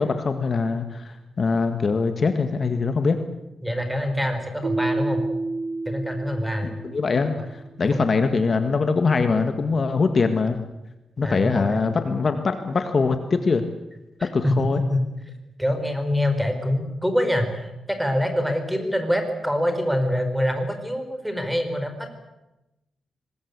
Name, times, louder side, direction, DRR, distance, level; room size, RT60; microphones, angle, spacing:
voice 1, 0.0-3.2 6.6-10.6 11.2-13.6 14.2-14.8, left 4 dB, 45° left, 8 dB, 1.7 m, -23 dB
voice 2, 3.6-5.2 5.9-6.7 7.4-7.5 7.9-8.1 11.2-11.8 14.2-15.0 15.6-22.1, left 1 dB, 5° right, 7 dB, 4.7 m, -25 dB
Keyboard (musical), 4.6-7.5, right 3 dB, 55° right, 1.1 m, -29 dB
24.0 x 20.5 x 8.3 m, 0.97 s
cardioid pair, 115°, 0 cm